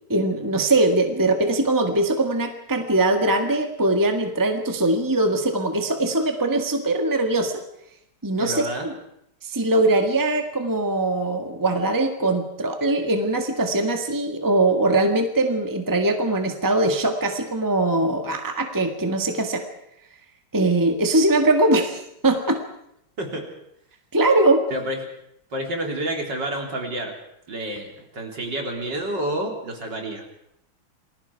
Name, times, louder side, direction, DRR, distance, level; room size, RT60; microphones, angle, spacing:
voice 1, 0.1-7.6 8.2-8.9 9.4-19.6 20.5-22.6 24.1-24.7, right 2 dB, 10° right, 4 dB, 1.7 m, -21 dB
voice 2, 8.4-8.9 23.2-23.5 24.7-25.1 25.5-27.2 27.5-30.2, right 1 dB, 55° right, 2 dB, 4.2 m, -29 dB
28.5 x 21.0 x 4.7 m, 0.76 s
omnidirectional pair, 2.2 m